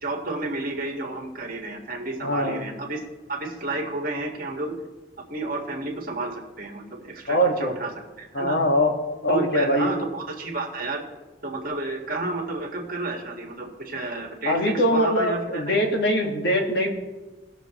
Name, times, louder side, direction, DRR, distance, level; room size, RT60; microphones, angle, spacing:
voice 1, 0.0-3.0 3.3-4.7 5.3-7.9 8.2-8.6 9.3-11.0 11.4-15.8, right 2 dB, 50° right, 1 dB, 1.7 m, -31 dB
voice 2, 2.2-2.6 7.3-7.7 8.3-8.9 9.2-9.9 14.4-16.9, equal, 65° left, 1 dB, 1.7 m, -22 dB
18.5 x 6.7 x 3.1 m, 1.2 s
head